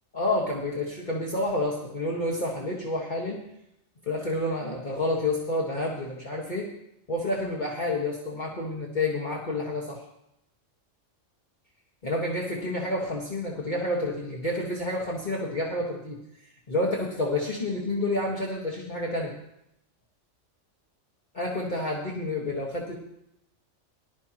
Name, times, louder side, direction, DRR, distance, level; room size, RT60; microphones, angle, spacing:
voice 1, 0.1-3.4 4.0-6.7 7.1-10.0 12.0-16.2 16.7-19.3 21.3-23.0, left 1 dB, 40° left, -3 dB, 1.7 m, -29 dB
19.0 x 12.0 x 2.9 m, 0.81 s
omnidirectional pair, 1.3 m